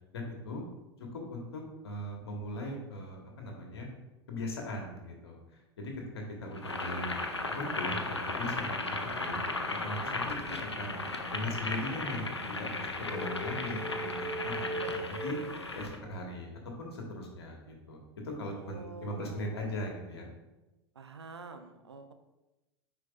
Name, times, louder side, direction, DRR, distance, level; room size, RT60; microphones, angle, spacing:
voice 1, 0.1-0.6 1.1-3.9 4.3-7.1 7.5-9.4 9.8-11.0 11.3-13.8 14.2-15.4 15.7-16.5 16.8-20.3, left 1 dB, 70° left, 1 dB, 1.4 m, -39 dB
Boiling, 6.5-16.0, left 2 dB, 90° left, 0.6 m, -36 dB
sound 1, 13.1-16.2, right 2 dB, 30° left, 1.7 m, -39 dB
voice 2, 18.6-19.7 20.9-22.1, right 4 dB, 80° right, 7 dB, 0.6 m, -47 dB
9.7 x 4.5 x 2.4 m, 1.0 s
figure-of-eight pair, 80°, 14 cm